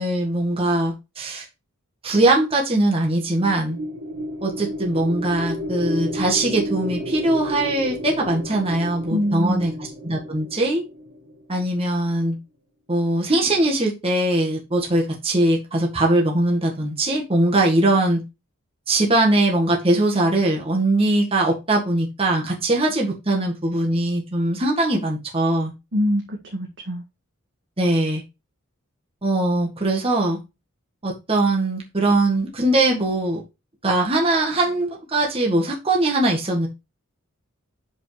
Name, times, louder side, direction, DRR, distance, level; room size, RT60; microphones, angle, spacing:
voice 1, 0.0-1.5 2.0-3.8 4.4-9.7 10.0-10.8 11.5-12.4 12.9-18.2 18.9-25.7 27.8-28.2 29.2-30.4 31.0-33.4 33.8-36.7, right 2 dB, 25° right, 1.8 m, -21 dB
sound 1, 3.2-11.6, equal, 75° right, 1.7 m, -32 dB
voice 2, 9.1-9.7 25.9-27.0, equal, 60° right, 1.8 m, -24 dB
6.0 x 5.2 x 5.0 m
head